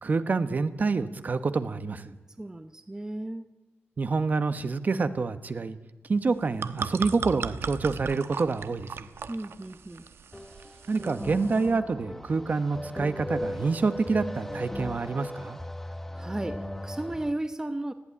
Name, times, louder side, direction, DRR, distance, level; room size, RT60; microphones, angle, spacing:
voice 1, 0.0-2.1 4.0-5.8 6.1-9.1 10.9-15.6, right 4 dB, 45° right, 12 dB, 1.2 m, -27 dB
voice 2, 2.4-3.5 9.3-10.1 16.1-17.9, right 1 dB, 15° right, 10 dB, 0.9 m, -34 dB
sound 1, 6.2-11.7, right 6 dB, 80° right, 1.0 m, -38 dB
sound 2, 10.3-17.3, left 1 dB, 5° left, 1.2 m, -38 dB
20.0 x 15.0 x 9.7 m, 1.2 s
wide cardioid pair, 160°, 4 cm